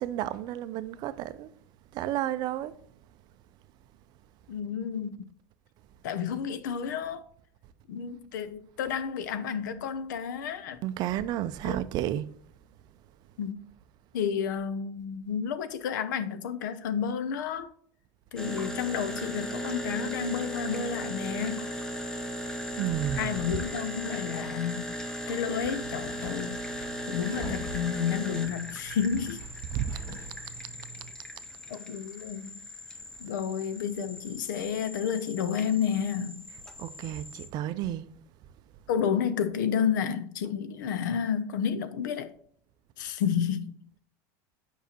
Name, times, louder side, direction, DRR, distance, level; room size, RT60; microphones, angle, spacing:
voice 1, 0.0-1.5 1.9-2.7 10.8-12.3 22.7-23.3 29.7-30.0 36.8-38.1, right 12 dB, 45° right, 0.4 m, -31 dB
voice 2, 4.5-5.3 6.0-7.2 7.9-10.8 11.6-11.8 13.4-13.6 14.1-17.7 18.3-21.7 23.1-25.0 25.3-26.6 27.1-29.4 31.7-32.6 33.2-36.4 38.9-42.3 43.0-43.8, left 7 dB, 90° left, 0.6 m, -31 dB
sound 1, 18.4-37.5, equal, 5° left, 0.7 m, -38 dB
sound 2, 25.6-31.1, equal, 25° left, 2.3 m, -44 dB
7.2 x 5.5 x 2.9 m
supercardioid pair, 135°, 10 cm